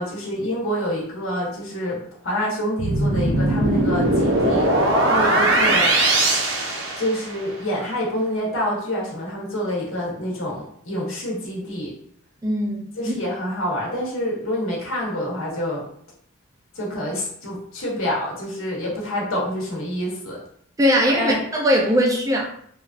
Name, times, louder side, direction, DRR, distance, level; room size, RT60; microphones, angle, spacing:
voice 1, 0.0-2.0 2.2-4.7 5.1-5.9 7.0-11.9 12.9-15.8 16.7-20.4 21.1-21.4, equal, 80° left, -4 dB, 1.0 m, -27 dB
sound 1, 2.8-7.5, right 1 dB, 65° right, 0.5 m, -20 dB
voice 2, 5.5-5.8 12.4-13.2 20.8-22.4, equal, 15° right, 0 dB, 0.3 m, -21 dB
3.2 x 2.3 x 2.4 m, 0.65 s
head